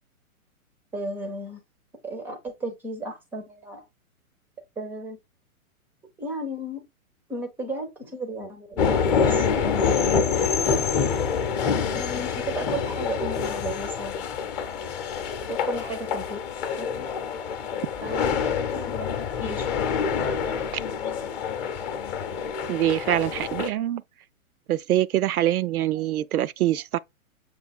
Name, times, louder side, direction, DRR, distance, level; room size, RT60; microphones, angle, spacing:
voice 1, 0.9-1.6 2.0-3.8 4.8-5.2 6.2-6.8 7.3-9.7 10.6-11.2 11.7-14.3 15.5-16.4 16.7-17.1 18.0-19.1 19.4-19.7, right 1 dB, 5° right, 0.5 m, -35 dB
sound 1, 8.8-23.7, left 6 dB, 30° left, 0.8 m, -26 dB
voice 2, 22.7-24.0 24.7-27.0, right 13 dB, 85° right, 0.5 m, -24 dB
6.9 x 2.7 x 2.3 m
hypercardioid pair, 130°, 43 cm